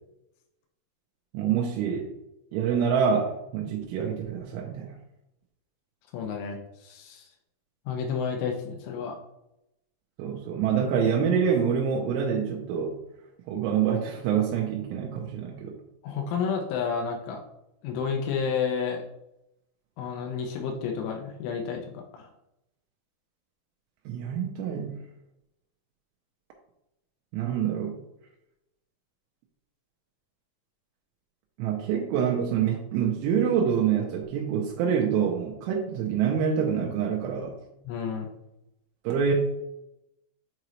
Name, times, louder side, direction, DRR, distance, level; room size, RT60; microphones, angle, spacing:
voice 1, 1.3-2.1 2.5-4.9 10.2-13.0 13.5-15.8 24.1-25.0 27.3-27.9 31.6-37.6 39.0-39.3, right 7 dB, 85° right, 0 dB, 3.1 m, -26 dB
voice 2, 6.1-7.3 7.9-9.2 16.0-17.4 17.8-19.0 20.0-22.3 37.9-38.3, left 6 dB, 90° left, 1 dB, 3.2 m, -31 dB
7.9 x 3.9 x 3.1 m, 0.87 s
omnidirectional pair, 5.4 m